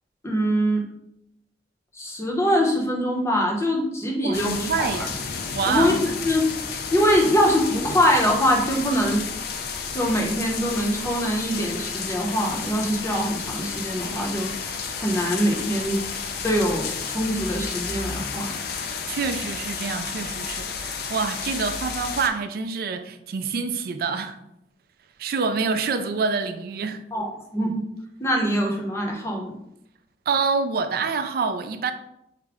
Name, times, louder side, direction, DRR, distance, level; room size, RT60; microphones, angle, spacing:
voice 1, 0.2-0.8 1.9-4.9 5.7-6.5 6.9-9.2 9.9-16.0 16.4-18.6 27.1-27.8 28.2-29.6, equal, 15° left, 0.7 m, -23 dB
voice 2, 4.2-5.2 5.5-6.1 19.1-24.4 25.2-27.0 30.3-31.9, right 5 dB, 55° right, 0.3 m, -26 dB
sound 1, 4.3-22.3, left 5 dB, 60° left, 0.4 m, -32 dB
4.8 x 2.1 x 3.4 m
head